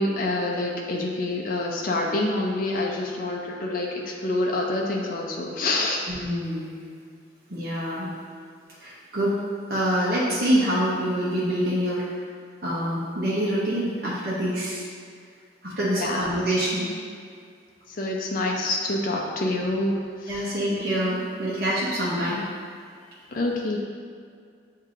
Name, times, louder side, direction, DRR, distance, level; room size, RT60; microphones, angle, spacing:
voice 1, 0.0-6.0 16.0-16.3 17.9-20.5 23.3-23.8, left 2 dB, 50° left, -1 dB, 0.5 m, -27 dB
voice 2, 6.1-6.8 7.5-8.1 8.8-9.3 9.7-12.0 12.6-14.9 15.6-16.9 20.3-22.4, equal, 60° right, -9 dB, 0.9 m, -26 dB
7.3 x 2.7 x 2.5 m, 2.2 s
head